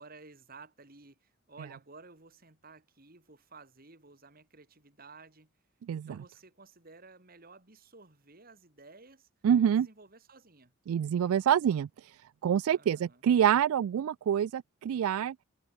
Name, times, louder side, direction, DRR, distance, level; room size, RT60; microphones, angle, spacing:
voice 1, 0.0-5.5 6.1-9.3 9.6-10.7 12.7-13.2, right 3 dB, 45° right, 2.4 m, -54 dB
voice 2, 9.4-9.9 10.9-11.9 12.4-15.4, right 9 dB, 80° right, 0.3 m, -26 dB
head